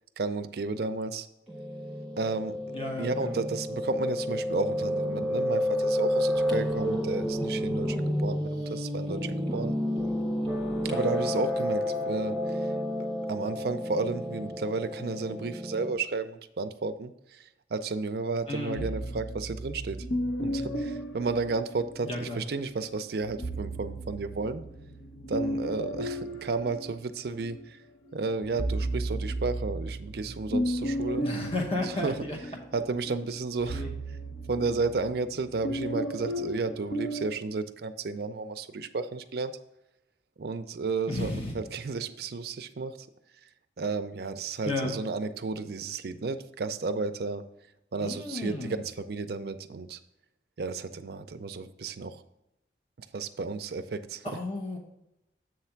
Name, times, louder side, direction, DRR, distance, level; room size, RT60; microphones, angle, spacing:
voice 1, 0.2-1.3 2.2-9.7 10.8-12.7 13.3-20.1 20.4-24.6 25.3-27.8 28.1-31.3 31.8-32.1 32.7-33.8 34.5-39.5 40.4-43.1 43.8-47.5 47.9-50.0 50.6-52.2 53.1-54.4, right 4 dB, 55° right, 10 dB, 0.4 m, -32 dB
Piano, 1.5-15.9, equal, ahead, 1.6 m, -30 dB
voice 2, 2.7-3.4 18.5-18.8 22.0-22.4 31.2-32.4 33.7-33.9 41.1-41.6 44.6-44.9 48.0-48.8 54.2-54.8, left 2 dB, 30° left, 1 dB, 0.9 m, -33 dB
sound 1, 18.8-22.3 23.2-27.7 28.1-37.4, right 1 dB, 80° left, 0.9 m, -34 dB
7.7 x 3.3 x 5.8 m, 0.90 s
head